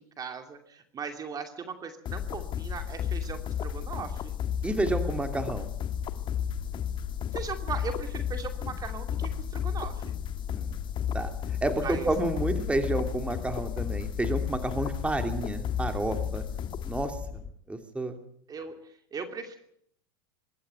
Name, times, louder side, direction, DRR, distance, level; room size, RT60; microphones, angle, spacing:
voice 1, 0.0-4.4 7.3-10.1 11.8-12.1 18.5-19.6, right 5 dB, 30° right, 7 dB, 2.6 m, -39 dB
sound 1, 2.1-17.5, left 8 dB, 35° left, 1.8 m, -33 dB
voice 2, 4.6-5.7 10.5-10.8 11.1-11.3 11.6-16.4 16.8-17.1 17.7-18.2, right 2 dB, 10° right, 7 dB, 2.8 m, -30 dB
24.0 x 12.5 x 9.3 m, 0.68 s
hypercardioid pair, 105°, 13 cm